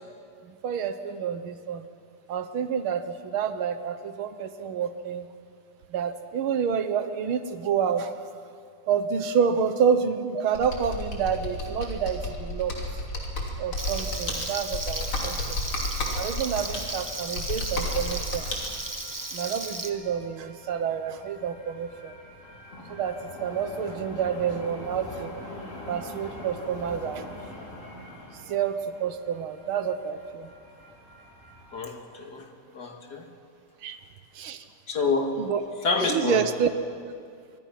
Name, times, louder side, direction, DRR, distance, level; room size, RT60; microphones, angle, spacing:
voice 1, 0.4-1.9 2.3-5.3 5.9-8.3 8.9-12.8 13.6-15.6 16.1-18.5 19.3-22.2 22.9-25.4 25.9-27.3 28.5-30.5 33.8-34.0 34.3-34.6 35.4-35.6 36.1-36.7, right 7 dB, 80° right, 10 dB, 1.9 m, -28 dB
Computer keyboard, 10.5-18.7, left 2 dB, 80° left, 3.8 m, -32 dB
Frying (food), 13.8-19.9, right 2 dB, 15° right, 0.6 m, -35 dB
sound 1, 15.9-31.8, left 1 dB, 35° left, 3.3 m, -44 dB
voice 2, 31.7-33.3 34.9-35.5 35.8-36.5, left 4 dB, 50° left, 3 dB, 2.4 m, -28 dB
26.0 x 23.0 x 6.0 m, 2.2 s
omnidirectional pair, 2.3 m